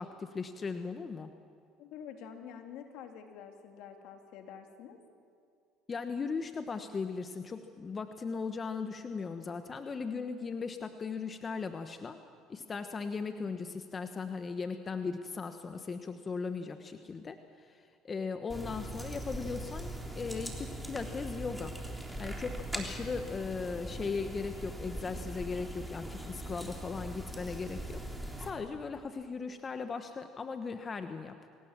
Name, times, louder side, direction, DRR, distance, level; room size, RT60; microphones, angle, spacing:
voice 1, 0.0-1.3 5.9-12.2 12.5-21.7 22.2-28.0 28.4-31.3, left 5 dB, 30° left, 8 dB, 1.1 m, -38 dB
voice 2, 1.8-5.0, left 8 dB, 70° left, 4 dB, 2.8 m, -47 dB
sound 1, 18.5-28.5, right 1 dB, 5° right, 3.5 m, -41 dB
25.0 x 18.0 x 7.4 m, 2.4 s
supercardioid pair, 85°, 0 cm